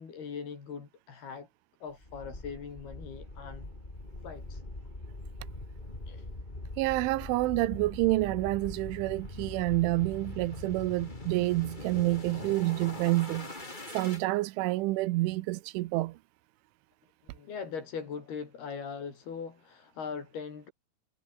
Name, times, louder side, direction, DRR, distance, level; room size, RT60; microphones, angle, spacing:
voice 1, 0.0-1.5 1.8-3.7 4.2-4.6 6.1-6.3 17.3-20.7, left 6 dB, 55° left, 6.4 m, -40 dB
sound 1, 2.0-14.2, left 2 dB, 10° left, 3.0 m, -42 dB
voice 2, 6.8-13.5 13.9-16.2, right 19 dB, 85° right, 3.3 m, -28 dB
omnidirectional pair, 5.4 m